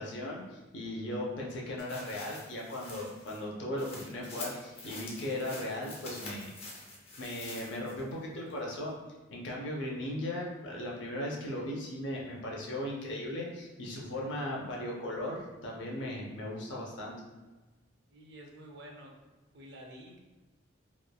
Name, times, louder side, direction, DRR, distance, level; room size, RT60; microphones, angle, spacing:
voice 1, 0.0-6.5 7.2-9.0 9.3-17.1, left 1 dB, 75° left, -2 dB, 0.6 m, -37 dB
sound 1, 1.8-8.1 8.5-8.6, left 2 dB, 30° left, 0.5 m, -46 dB
voice 2, 18.1-19.2 19.5-20.2, equal, 60° right, 0 dB, 0.5 m, -49 dB
3.0 x 2.2 x 2.2 m, 1.2 s
head